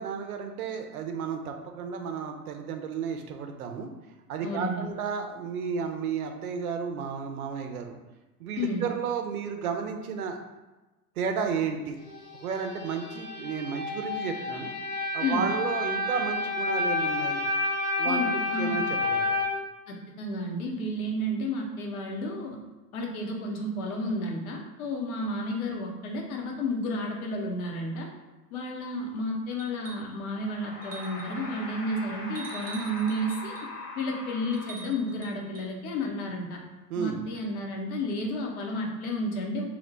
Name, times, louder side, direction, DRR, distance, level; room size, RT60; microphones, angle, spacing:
voice 1, 0.0-3.9 4.3-8.0 8.4-10.4 11.2-12.0 12.4-14.7 15.1-17.4 18.0-19.4 36.9-37.2, right 6 dB, 65° right, 5 dB, 0.6 m, -32 dB
voice 2, 4.4-4.9 8.6-8.8 15.2-15.5 18.0-18.8 19.9-22.6 22.9-28.1 28.5-33.7 34.0-36.6 37.0-39.6, left 1 dB, 60° left, 1 dB, 0.8 m, -31 dB
sound 1, 12.0-19.4, left 2 dB, 10° left, 0.4 m, -30 dB
sound 2, 29.6-30.2 30.8-31.4 32.3-33.7 34.5-35.7 37.3-37.4, right 5 dB, 20° right, 0.7 m, -46 dB
sound 3, 30.2-35.3, left 2 dB, 30° left, 0.8 m, -41 dB
2.9 x 2.1 x 3.8 m, 1.1 s
figure-of-eight pair, 90°, 48 cm